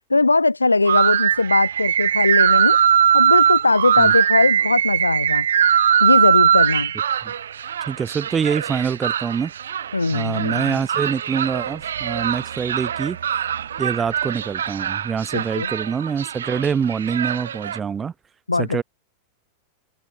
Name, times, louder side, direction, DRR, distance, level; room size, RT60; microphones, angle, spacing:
voice 1, 0.1-2.8 3.1-5.5 6.0-6.9 9.9-10.8 15.3-15.7 18.5-18.8, left 3 dB, 80° left, 6.7 m, -20 dB
sound 1, 0.9-17.8, right 9 dB, 65° right, 6.0 m, -21 dB
voice 2, 7.9-9.5 10.1-13.2 13.8-18.1 18.6-18.8, right 6 dB, 20° right, 6.0 m, -25 dB
open air
figure-of-eight pair, 90°, 0 cm